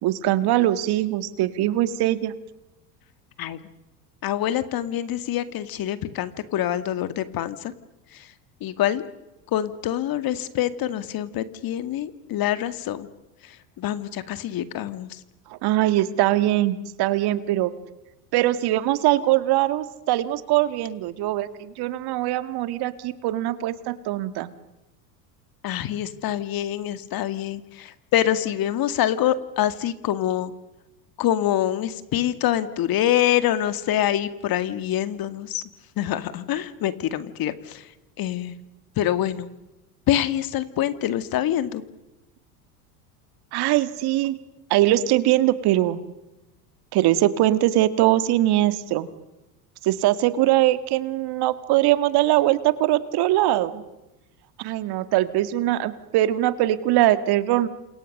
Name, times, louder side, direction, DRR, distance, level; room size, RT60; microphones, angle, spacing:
voice 1, 0.0-2.3 15.5-17.7 18.3-24.5 43.5-44.3 44.7-46.0 46.9-49.1 49.8-53.8 54.6-57.7, right 14 dB, 55° right, 13 dB, 2.0 m, -22 dB
voice 2, 4.2-7.7 8.1-8.3 8.6-9.0 9.5-13.1 13.4-15.2 25.6-30.5 31.2-35.6 36.0-37.9 38.2-38.6 39.0-39.5 40.1-41.8, left 12 dB, 45° left, 12 dB, 2.1 m, -25 dB
29.5 x 27.0 x 6.7 m, 1.0 s
hypercardioid pair, 85°, 48 cm